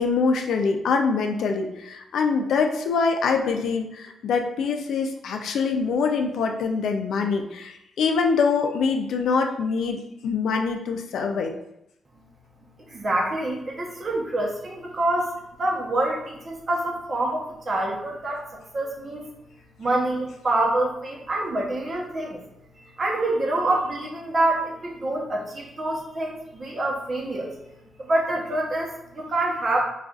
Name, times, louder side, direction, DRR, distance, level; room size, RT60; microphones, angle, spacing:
voice 1, 0.0-11.5, left 5 dB, 75° left, 4 dB, 0.4 m, -24 dB
voice 2, 12.9-19.3 19.8-22.4 23.0-27.5 28.0-29.8, right 2 dB, 35° right, -1 dB, 0.8 m, -26 dB
5.1 x 2.4 x 2.4 m, 0.82 s
wide cardioid pair, 140°, 0 cm